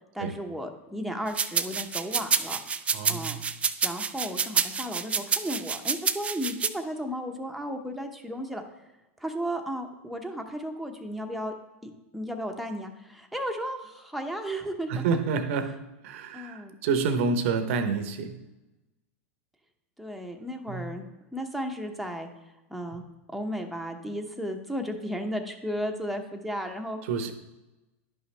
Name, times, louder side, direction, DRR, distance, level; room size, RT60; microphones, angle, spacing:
voice 1, 0.1-2.6 3.1-3.4 3.8-8.6 9.2-11.5 11.8-15.0 16.3-16.7 20.0-21.0 21.3-22.3 22.7-23.0 23.3-27.0, equal, ahead, 3 dB, 0.8 m, -34 dB
sound 1, 1.4-6.7, right 6 dB, 15° right, 0.3 m, -27 dB
voice 2, 2.9-3.4 14.9-15.8 16.0-18.4 20.7-20.9 27.1-27.3, right 5 dB, 65° right, 9 dB, 0.8 m, -28 dB
11.0 x 5.6 x 3.3 m, 1.0 s
hypercardioid pair, 115°, 8 cm